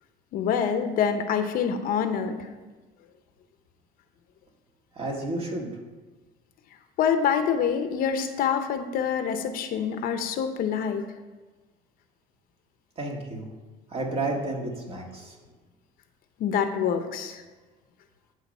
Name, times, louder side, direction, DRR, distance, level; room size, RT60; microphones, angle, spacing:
voice 1, 0.3-2.5 7.0-11.0 16.4-17.4, left 7 dB, 65° left, 8 dB, 0.8 m, -26 dB
voice 2, 4.9-5.7 13.0-13.5 13.9-15.4, right 2 dB, 40° right, 0 dB, 1.9 m, -31 dB
10.5 x 3.9 x 5.5 m, 1.2 s
cardioid pair, 105°, 16 cm